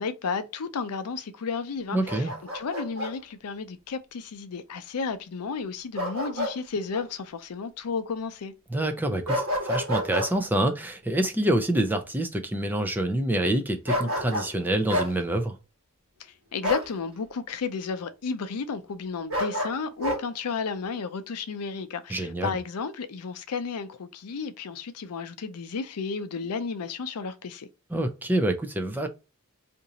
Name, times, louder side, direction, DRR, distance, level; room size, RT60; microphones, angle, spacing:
voice 1, 0.0-8.5 16.2-27.7, left 5 dB, 85° left, 0.5 m, -33 dB
voice 2, 1.9-2.3 8.7-15.6 22.1-22.6 27.9-29.1, right 1 dB, 10° right, 0.4 m, -26 dB
Bark, 2.1-3.1 6.0-6.6 6.9-7.1 9.3-10.3 13.9-14.5 14.9-15.1 16.6-16.9 19.3-20.2, equal, 65° right, 1.4 m, -29 dB
2.8 x 2.6 x 3.9 m
head